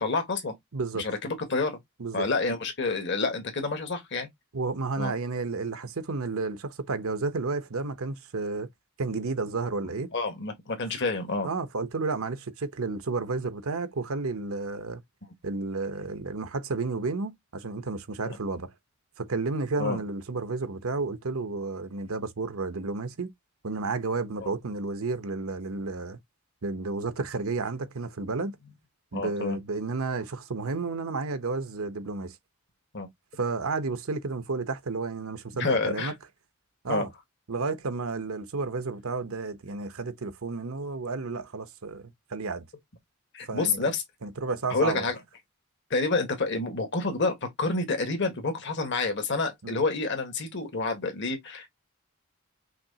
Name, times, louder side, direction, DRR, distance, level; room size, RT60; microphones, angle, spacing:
voice 1, 0.0-0.5 0.9-1.8 2.1-4.3 5.0-5.1 10.1-11.5 18.3-18.4 19.8-20.0 24.4-24.5 29.1-29.6 32.9-33.1 35.6-36.1 36.9-37.0 43.3-44.0 44.7-45.1 45.9-51.7, left 3 dB, 55° left, 1.5 m, -28 dB
voice 2, 0.7-1.0 2.0-2.3 4.5-8.7 9.0-10.1 11.4-15.0 15.4-18.7 19.2-23.3 23.6-26.2 26.6-28.6 29.1-32.4 33.4-36.1 36.8-37.1 37.5-42.6 43.5-43.8 44.2-45.1 49.6-49.8, right 3 dB, 75° right, 0.8 m, -31 dB
5.9 x 2.9 x 2.8 m
head